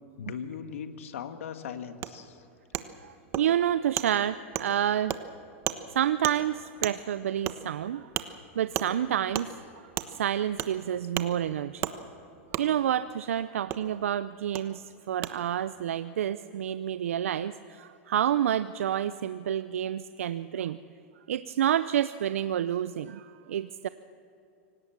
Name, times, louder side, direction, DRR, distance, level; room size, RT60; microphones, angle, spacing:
voice 1, 0.2-2.5, left 7 dB, 80° left, 8 dB, 1.7 m, -39 dB
Wood, 2.0-2.1 2.7-2.8 3.3-3.4 4.0-4.1 4.5-4.7 5.1-5.2 5.7-5.8 6.2-6.4 6.8-7.0 7.5-7.6 8.1-8.3 8.7-8.9 9.3-9.5 10.0-10.1 10.6-10.7 11.1-11.3 11.8-11.9 12.5-12.6 13.7-13.8 14.5-14.6 15.2-15.3, right 14 dB, 40° right, 1.2 m, -31 dB
voice 2, 3.0-5.2 5.9-8.1 8.6-9.5 10.1-11.9 12.6-20.8 21.3-23.9, right 10 dB, 85° right, 14 dB, 0.5 m, -29 dB
25.0 x 18.5 x 7.3 m, 2.7 s
hypercardioid pair, 125°, 7 cm